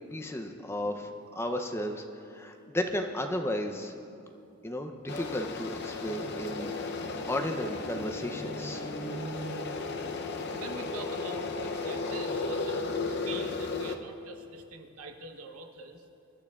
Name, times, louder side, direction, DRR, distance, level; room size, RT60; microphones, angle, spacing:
voice 1, 0.1-2.0 2.3-3.9 4.6-6.9 7.3-8.9, left 1 dB, 10° left, 4 dB, 0.6 m, -34 dB
sound 1, 5.1-14.0, left 3 dB, 50° left, 0.7 m, -35 dB
sound 2, 5.9-10.6, right 1 dB, 20° right, 1.0 m, -44 dB
voice 2, 10.5-16.0, right 4 dB, 80° right, 4 dB, 1.0 m, -45 dB
24.5 x 11.5 x 2.4 m, 2.6 s
head